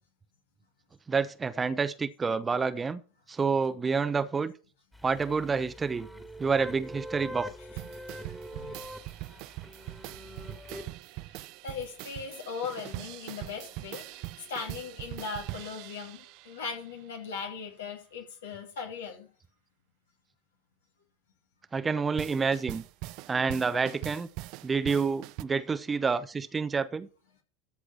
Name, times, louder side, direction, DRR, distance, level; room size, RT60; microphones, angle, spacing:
voice 1, 1.1-3.0 3.3-4.5 5.0-6.1 6.4-7.5 21.7-22.8 23.3-24.3 24.6-27.1, right 5 dB, 20° right, 0.9 m, -28 dB
sound 1, 4.9-10.8, equal, 5° left, 2.1 m, -43 dB
sound 2, 7.8-16.9 22.2-25.4, right 18 dB, 55° right, 0.5 m, -42 dB
voice 2, 11.3-19.3, left 5 dB, 70° left, 3.0 m, -39 dB
14.0 x 4.8 x 5.9 m
figure-of-eight pair, 75°, 0 cm